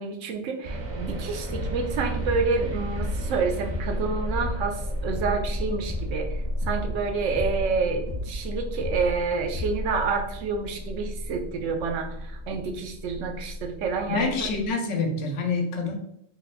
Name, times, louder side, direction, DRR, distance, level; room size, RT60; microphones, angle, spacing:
voice 1, 0.0-14.3, right 4 dB, 85° right, 4 dB, 1.0 m, -28 dB
sound 1, 0.6-14.7, equal, 60° right, 0.8 m, -33 dB
sound 2, 1.5-1.9 2.2-2.6 2.9-3.3 3.7-4.1 4.4-4.8 5.1-5.5 5.9-6.3 6.6-7.0 7.3-7.7 8.1-8.4 8.8-9.2 9.5-9.9, left 2 dB, 45° left, 0.7 m, -35 dB
voice 2, 14.1-16.0, left 3 dB, 80° left, 4 dB, 1.0 m, -26 dB
3.5 x 2.4 x 3.4 m, 0.73 s
omnidirectional pair, 1.3 m